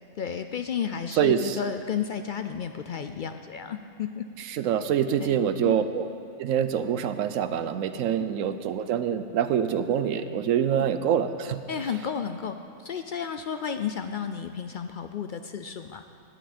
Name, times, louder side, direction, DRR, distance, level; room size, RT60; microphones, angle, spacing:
voice 1, 0.2-4.3 5.2-5.9 10.7-10.9 11.7-16.0, left 7 dB, 70° left, 8 dB, 0.4 m, -32 dB
voice 2, 1.2-1.6 4.5-6.1 6.4-11.6, right 9 dB, 75° right, 11 dB, 1.0 m, -25 dB
19.5 x 10.0 x 4.3 m, 2.6 s
omnidirectional pair, 1.4 m